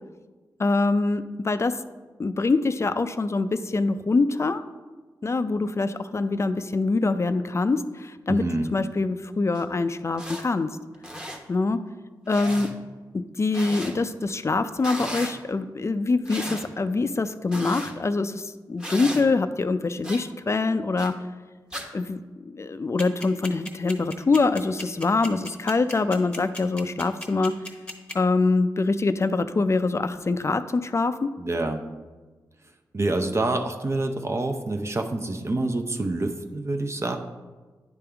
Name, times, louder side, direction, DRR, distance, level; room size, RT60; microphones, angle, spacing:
voice 1, 0.6-1.7 2.2-4.6 5.2-8.4 8.7-10.7 11.5-11.8 12.3-12.7 13.1-21.1 21.9-22.2 22.5-27.5 28.1-31.3, left 3 dB, 35° left, 11 dB, 0.4 m, -24 dB
voice 2, 8.3-8.7 31.4-31.8 32.9-37.2, right 2 dB, 35° right, 5 dB, 0.6 m, -27 dB
sound 1, 9.5-9.6 10.1-10.4 10.9-11.4 12.3-12.7 13.5-13.9 14.8-15.4 16.3-16.7 17.5-17.9 18.8-19.2 20.0-20.2 21.0-21.1 21.7-21.9, equal, 10° right, 1.1 m, -35 dB
sound 2, 23.0-28.1, left 1 dB, 10° left, 1.0 m, -36 dB
9.6 x 3.5 x 3.4 m, 1.3 s
cardioid pair, 45°, 8 cm